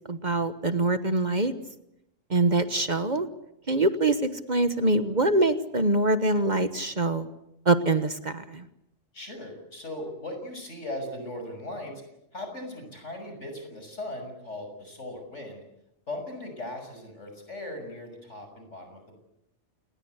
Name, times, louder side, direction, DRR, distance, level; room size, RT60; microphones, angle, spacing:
voice 1, 0.1-1.5 2.3-3.3 3.7-7.3 7.6-8.7, right 2 dB, 40° right, 10 dB, 1.3 m, -24 dB
voice 2, 9.1-11.9 12.3-15.6 16.1-19.2, left 1 dB, 75° left, 5 dB, 6.9 m, -38 dB
28.5 x 20.0 x 8.2 m, 0.83 s
omnidirectional pair, 1.2 m